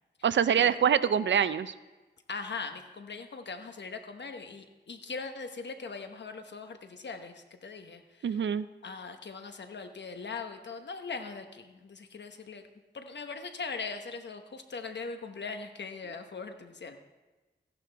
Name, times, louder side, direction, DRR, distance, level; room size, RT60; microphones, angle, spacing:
voice 1, 0.2-1.7 8.2-8.7, right 8 dB, 90° right, 15 dB, 0.4 m, -25 dB
voice 2, 2.3-8.5 8.8-12.6 12.9-17.0, left 4 dB, 75° left, 6 dB, 1.0 m, -40 dB
15.0 x 11.0 x 3.4 m, 1.2 s
wide cardioid pair, 90°, 18 cm